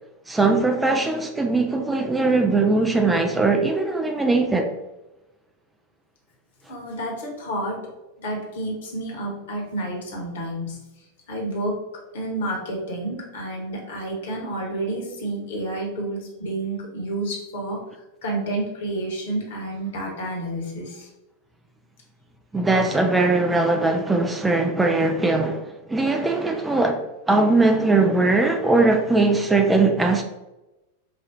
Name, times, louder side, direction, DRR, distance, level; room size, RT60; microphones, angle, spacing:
voice 1, 0.3-4.7 22.5-30.2, right 3 dB, 10° right, 0.3 m, -20 dB
voice 2, 6.7-7.8 8.2-10.8 11.3-21.1, right 1 dB, 60° left, 1.2 m, -30 dB
5.0 x 2.3 x 2.9 m
figure-of-eight pair, 90°, 0 cm